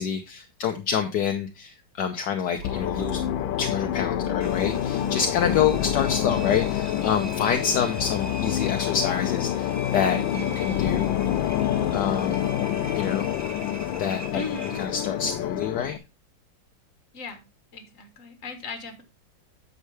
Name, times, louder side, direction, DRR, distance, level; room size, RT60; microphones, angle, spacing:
voice 1, 0.0-3.2 3.6-11.1 11.9-12.4 12.9-13.3 14.0-16.0, left 7 dB, 65° left, 5 dB, 1.4 m, -27 dB
sound 1, 2.6-16.0, left 11 dB, 90° left, 1.4 m, -27 dB
sound 2, 2.6-8.5, right 5 dB, 55° right, 1.2 m, -43 dB
Engine, 4.4-15.2, right 2 dB, 25° right, 0.3 m, -42 dB
voice 2, 14.3-14.8 17.1-17.4 17.7-19.0, left 3 dB, 45° left, 7 dB, 1.8 m, -37 dB
9.5 x 6.7 x 3.4 m, 0.26 s
omnidirectional pair, 2.0 m